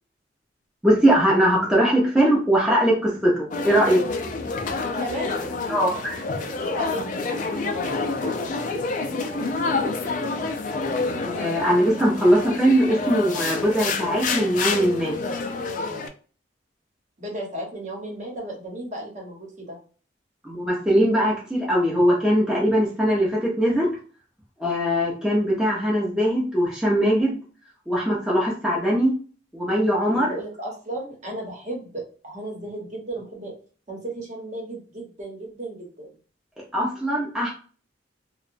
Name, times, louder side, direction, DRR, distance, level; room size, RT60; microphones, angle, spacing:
voice 1, 0.8-4.0 5.7-5.9 11.2-15.1 20.4-23.9 24.6-27.4 27.9-29.1 29.5-30.3 36.7-37.5, equal, 5° right, -6 dB, 0.6 m, -21 dB
sound 1, 3.5-16.1, left 3 dB, 45° left, 0.3 m, -28 dB
voice 2, 4.9-5.8 6.4-10.5 17.2-19.8 30.1-33.5 33.9-36.1, right 1 dB, 40° right, -1 dB, 0.9 m, -35 dB
2.8 x 2.1 x 2.5 m, 0.40 s
head